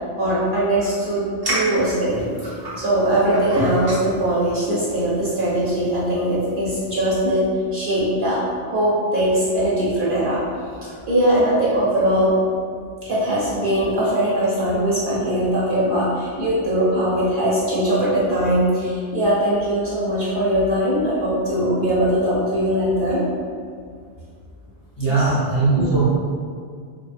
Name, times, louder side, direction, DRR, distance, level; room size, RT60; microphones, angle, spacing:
voice 1, 0.2-7.5 7.7-10.4 10.7-12.3 13.0-23.2 25.1-25.3 25.8-25.9, right 1 dB, 55° right, -8 dB, 0.7 m, -21 dB
sound 1, 1.4-7.3, right 1 dB, 40° right, 0.3 m, -31 dB
voice 2, 25.0-26.0, right 3 dB, 25° left, -12 dB, 0.7 m, -19 dB
2.9 x 2.1 x 2.4 m, 2.1 s
omnidirectional pair, 1.2 m